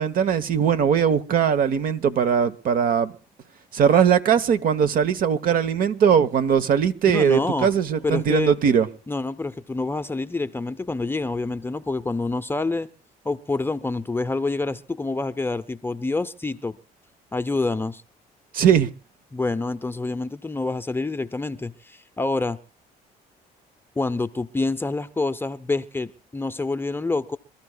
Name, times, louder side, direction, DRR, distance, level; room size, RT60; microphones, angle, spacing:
voice 1, 0.0-3.1 3.7-8.9 18.5-18.9, right 7 dB, 55° right, 1.0 m, -20 dB
voice 2, 7.1-7.7 8.0-8.5 9.1-12.9 13.2-16.8 17.3-18.0 19.3-22.6 24.0-27.4, left 3 dB, 15° left, 0.6 m, -27 dB
27.0 x 13.5 x 2.3 m
cardioid pair, 110°, 17 cm